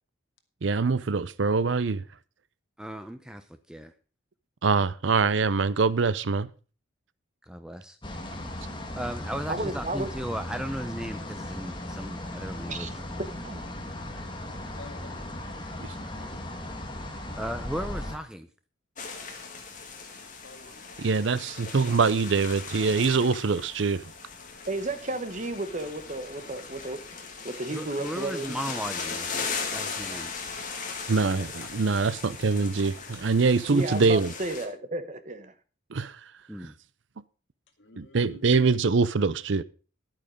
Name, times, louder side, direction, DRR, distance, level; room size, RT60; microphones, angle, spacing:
voice 1, 0.6-2.0 4.6-6.5 21.0-24.0 31.1-34.3 35.9-36.2 36.6-36.7 38.0-39.6, right 4 dB, 65° right, 0.6 m, -24 dB
voice 2, 2.8-3.9 7.5-8.0 9.0-13.0 17.3-18.5 27.7-29.4 29.7-30.3 36.5-36.7, equal, 5° right, 0.6 m, -36 dB
sound 1, 8.0-18.2, left 1 dB, 25° left, 1.6 m, -37 dB
voice 3, 9.5-10.1 12.7-12.9 13.4-13.6 24.7-27.0 27.4-28.6 33.7-35.5, right 2 dB, 35° right, 1.1 m, -32 dB
voice 4, 14.6-15.3 20.1-20.8 37.8-38.7, left 2 dB, 65° left, 2.0 m, -49 dB
sound 2, 19.0-34.7, left 5 dB, 40° left, 2.1 m, -38 dB
11.0 x 8.9 x 5.1 m
head